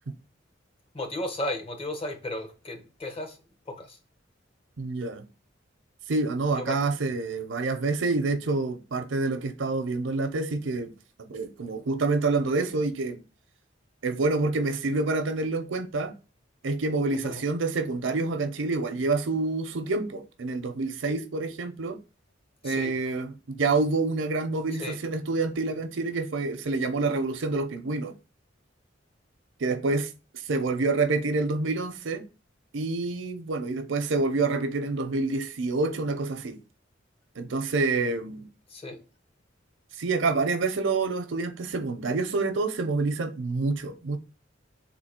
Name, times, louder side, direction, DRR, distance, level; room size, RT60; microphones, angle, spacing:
voice 1, 0.9-3.4 3.7-4.0 6.6-6.8 17.1-17.4 22.6-22.9 24.8-25.0 38.7-39.0, left 1 dB, 30° left, 0.8 m, -34 dB
voice 2, 4.8-5.2 6.1-10.9 11.3-13.2 14.0-16.1 16.6-22.0 22.6-28.1 29.6-30.1 30.5-32.3 32.7-36.6 37.4-38.5 40.0-44.2, right 3 dB, 80° right, 0.6 m, -27 dB
3.7 x 2.7 x 4.3 m
head